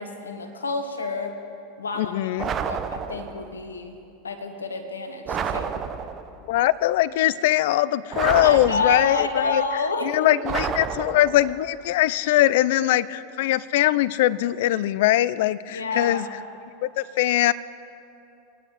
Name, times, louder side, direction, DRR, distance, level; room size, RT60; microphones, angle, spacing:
voice 1, 0.0-1.3 1.8-2.2 2.6-4.0 4.2-5.8 8.4-10.4 15.7-16.3, left 3 dB, 85° left, 5 dB, 1.3 m, -29 dB
voice 2, 2.0-2.5 6.5-9.6 10.0-16.3 16.8-17.5, left 15 dB, 60° left, 18 dB, 0.4 m, -21 dB
sound 1, 2.4-3.5 5.3-6.4 8.1-9.3 10.4-11.6, right 7 dB, 35° right, 0.7 m, -30 dB
21.5 x 10.0 x 3.0 m, 2.8 s
figure-of-eight pair, 85°, 0 cm